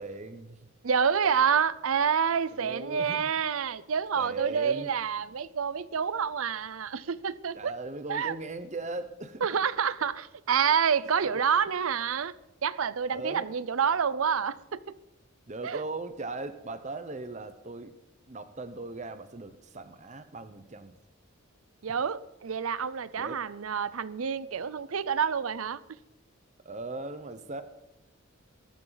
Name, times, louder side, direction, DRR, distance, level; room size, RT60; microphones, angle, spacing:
voice 1, 0.0-0.7 2.5-3.3 4.2-4.9 7.5-9.5 11.3-11.5 13.1-13.6 15.5-18.0 18.3-21.0 21.9-22.0 23.2-23.4 26.6-27.6, right 2 dB, 35° right, 0.9 m, -38 dB
voice 2, 0.8-7.7 8.1-8.3 9.4-12.3 12.6-15.0 15.6-15.8 21.8-25.8, right 7 dB, 85° right, 0.6 m, -28 dB
22.0 x 13.5 x 4.0 m
head